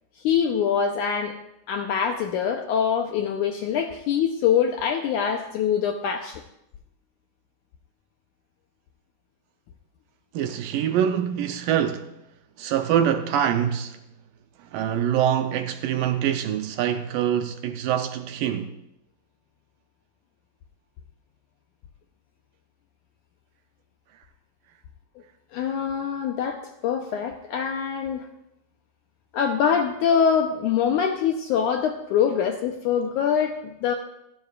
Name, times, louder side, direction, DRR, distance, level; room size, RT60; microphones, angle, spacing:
voice 1, 0.2-1.4 1.7-6.4 25.5-28.3 29.3-33.9, left 7 dB, 80° left, 1.8 m, -24 dB
voice 2, 10.3-12.1 12.6-14.0 14.6-18.7, right 9 dB, 75° right, 2.1 m, -24 dB
27.5 x 12.0 x 2.4 m
omnidirectional pair, 4.3 m